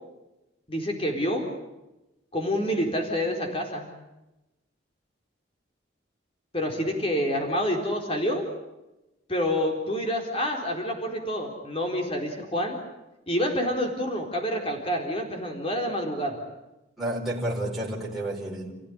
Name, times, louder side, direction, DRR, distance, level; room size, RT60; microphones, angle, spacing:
voice 1, 0.7-1.5 2.3-3.9 6.5-8.5 9.3-12.8 13.3-16.4, equal, 30° left, 3 dB, 4.2 m, -28 dB
voice 2, 17.0-18.7, right 1 dB, ahead, -5 dB, 4.4 m, -30 dB
30.0 x 16.0 x 9.9 m, 0.99 s
head